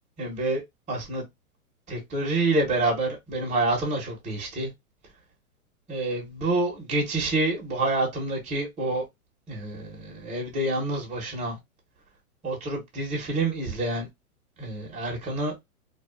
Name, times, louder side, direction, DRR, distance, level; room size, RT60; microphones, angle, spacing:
voice 1, 0.2-0.6 0.9-1.2 1.9-4.7 5.9-9.0 9.5-11.6 12.4-14.1 14.6-15.5, right 2 dB, 15° right, 0.9 m, -27 dB
2.4 x 2.4 x 2.3 m
hypercardioid pair, 125°, 44 cm